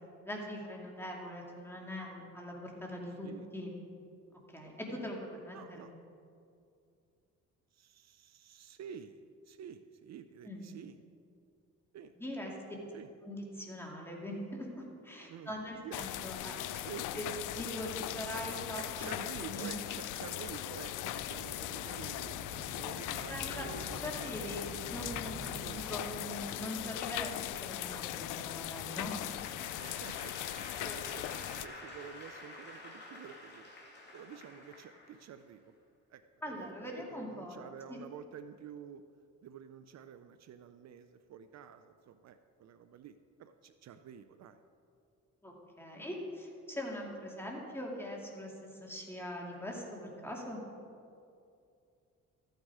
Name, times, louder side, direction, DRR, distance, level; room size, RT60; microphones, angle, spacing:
voice 1, 0.2-3.7 4.5-5.9 10.4-10.6 12.2-12.5 13.2-16.6 17.2-19.1 19.5-19.8 23.3-23.7 24.0-29.1 30.8-31.0 36.4-37.6 37.9-38.0 45.4-48.5 48.8-50.6, equal, 10° left, -2 dB, 2.6 m, -42 dB
voice 2, 5.5-5.9 7.7-11.0 11.9-12.1 12.4-12.5 12.9-13.1 15.3-16.1 16.7-17.3 18.7-22.4 22.8-24.5 25.6-25.9 29.8-30.4 30.8-33.7 34.1-35.7 36.1-39.0 39.4-44.6, right 8 dB, 60° right, 10 dB, 0.6 m, -50 dB
sound 1, 15.9-31.7, left 13 dB, 85° left, 0.5 m, -39 dB
sound 2, 20.8-26.0, right 2 dB, 85° right, 2.1 m, -48 dB
Applause / Crowd, 29.1-35.5, left 2 dB, 35° left, 2.7 m, -49 dB
14.0 x 9.2 x 4.8 m, 2.5 s
cardioid pair, 90°, 30 cm